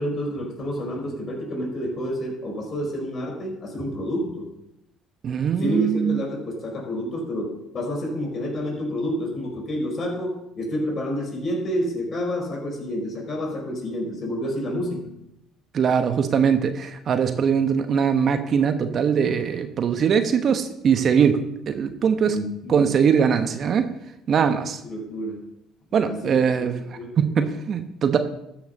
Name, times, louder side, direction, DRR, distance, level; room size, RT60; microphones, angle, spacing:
voice 1, 0.0-4.5 5.6-15.1 22.2-22.9 24.8-25.4 26.0-26.5 27.0-27.1, equal, 40° left, 0 dB, 4.9 m, -29 dB
voice 2, 5.2-6.2 15.7-21.4 21.7-22.4 22.7-23.9 24.3-24.8 25.9-26.8 27.2-28.2, right 7 dB, 50° right, 8 dB, 1.0 m, -21 dB
13.0 x 6.5 x 5.4 m, 0.80 s
hypercardioid pair, 60°, 0 cm